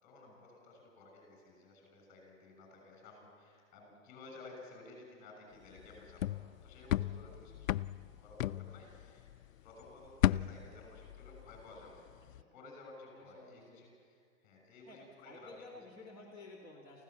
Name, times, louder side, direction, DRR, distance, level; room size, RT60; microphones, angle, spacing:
voice 1, 0.0-7.7 8.0-9.3 9.6-15.8, left 2 dB, 20° left, 1 dB, 6.5 m, -55 dB
sound 1, 5.8-9.5 9.8-11.8 12.1-12.4, left 13 dB, 85° left, 0.5 m, -35 dB
voice 2, 13.1-13.8 14.9-17.0, left 2 dB, 5° right, -6 dB, 2.1 m, -53 dB
24.5 x 15.5 x 7.4 m, 2.2 s
hypercardioid pair, 170°, 39 cm